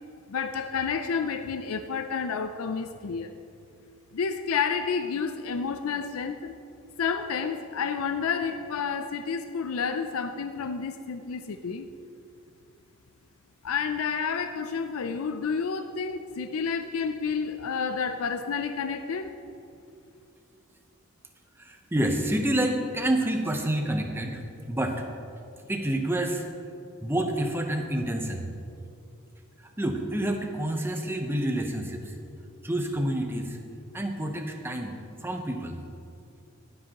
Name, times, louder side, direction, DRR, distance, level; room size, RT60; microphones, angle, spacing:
voice 1, 0.3-3.3 4.1-6.6 7.0-11.9 13.6-19.3, left 6 dB, 75° left, 9 dB, 0.4 m, -30 dB
voice 2, 21.6-24.4 24.7-25.1 25.7-26.5 27.0-28.5 29.6-32.2 32.6-33.6 33.9-35.8, right 1 dB, 10° right, 3 dB, 0.8 m, -28 dB
19.5 x 7.7 x 2.9 m, 2.6 s
head